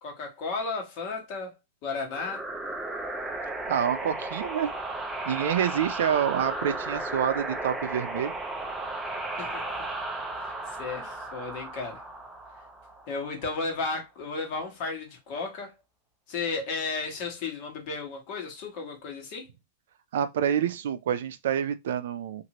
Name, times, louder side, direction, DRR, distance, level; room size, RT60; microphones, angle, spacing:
voice 1, 0.0-1.5 1.8-2.4 9.4-9.6 10.4-12.0 13.1-15.7 16.3-19.5, left 4 dB, 40° left, 1.2 m, -34 dB
sound 1, 2.1-13.4, right 2 dB, 5° right, 0.5 m, -35 dB
voice 2, 3.7-4.7 5.3-8.3 20.1-22.4, right 9 dB, 75° right, 0.4 m, -27 dB
2.8 x 2.5 x 2.9 m
supercardioid pair, 155°, 0 cm